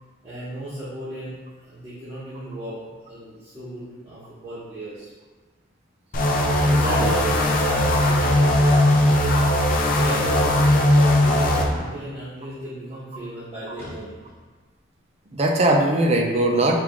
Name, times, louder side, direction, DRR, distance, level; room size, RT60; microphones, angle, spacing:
voice 1, 0.2-1.3 1.7-2.8 3.1-5.1 6.5-9.5 9.9-14.1, right 1 dB, 15° right, -14 dB, 1.2 m, -34 dB
sound 1, 6.1-11.7, left 1 dB, 45° left, 0.5 m, -19 dB
voice 2, 6.6-7.1 15.3-16.8, right 1 dB, 30° right, 1 dB, 0.5 m, -21 dB
sound 2, 11.4-12.0 13.8-14.5 14.8-14.9, left 1 dB, 10° left, 1.0 m, -40 dB
4.8 x 2.4 x 3.7 m, 1.3 s
head